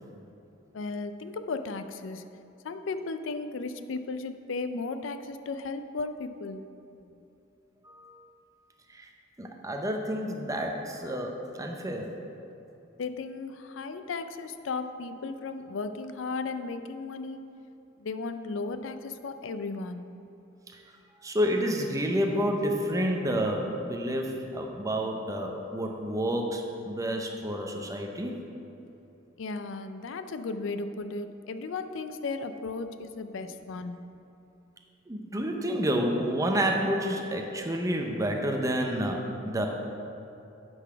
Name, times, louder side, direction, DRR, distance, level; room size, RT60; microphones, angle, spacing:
voice 1, 0.7-2.2 2.6-6.6 13.0-17.4 18.0-20.0 29.4-34.0, left 3 dB, 75° left, 10 dB, 0.4 m, -35 dB
voice 2, 7.8-8.3 8.9-9.1 9.4-12.2 13.7-13.9 20.7-20.8 21.2-28.4 35.1-39.7, equal, 15° right, 2 dB, 0.7 m, -29 dB
9.1 x 4.1 x 5.6 m, 2.8 s
head